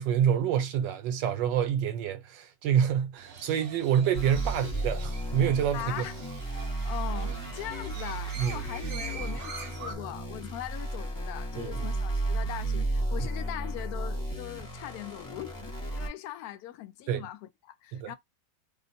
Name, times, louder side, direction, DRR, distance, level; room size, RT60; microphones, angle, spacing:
voice 1, 0.0-6.0 8.4-8.6 11.6-11.9 17.1-17.2 17.9-18.1, right 9 dB, 75° right, 1.4 m, -27 dB
Crow, 3.2-9.9, right 5 dB, 60° right, 0.7 m, -44 dB
sound 1, 4.1-16.1, right 2 dB, 25° left, 0.4 m, -33 dB
voice 2, 5.7-18.2, left 13 dB, 75° left, 0.9 m, -41 dB
3.0 x 2.1 x 4.1 m
omnidirectional pair, 2.0 m